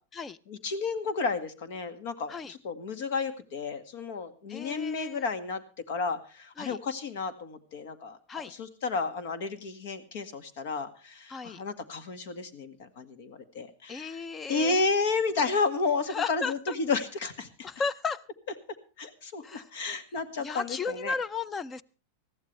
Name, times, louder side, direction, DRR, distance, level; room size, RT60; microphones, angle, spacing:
voice 1, 0.5-5.6 5.9-14.2 14.5-17.7 19.0-21.1, left 4 dB, 65° left, 11 dB, 1.8 m, -32 dB
voice 2, 4.5-5.2 6.6-6.8 8.3-8.5 11.3-11.6 13.9-14.8 16.1-16.8 17.6-18.2 19.4-19.7 20.4-21.8, left 5 dB, 20° left, 20 dB, 0.6 m, -34 dB
20.0 x 14.5 x 3.3 m, 0.34 s
supercardioid pair, 135°, 0 cm